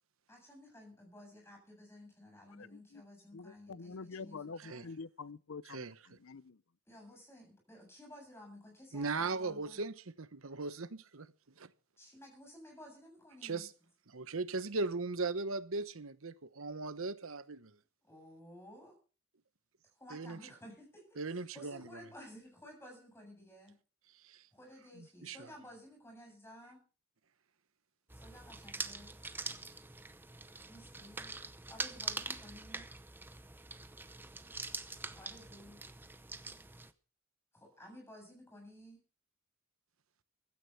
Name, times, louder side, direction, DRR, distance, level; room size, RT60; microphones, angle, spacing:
voice 1, 0.3-4.9 6.9-9.9 12.0-13.7 18.0-18.9 20.0-23.8 24.5-26.8 28.1-29.2 30.7-31.4 31.7-32.9 35.1-35.8 37.5-39.0, left 1 dB, 10° left, 7.9 m, -54 dB
voice 2, 2.6-3.0 3.3-6.6, left 4 dB, 65° left, 0.6 m, -47 dB
voice 3, 5.7-6.2 8.9-11.3 11.6-11.7 13.4-13.7 14.1-17.7 20.1-20.4 21.2-21.9 24.2-24.4 25.0-25.5, right 3 dB, 65° right, 1.0 m, -38 dB
sound 1, 28.1-36.9, right 3 dB, 10° right, 0.8 m, -44 dB
16.0 x 13.0 x 5.6 m
head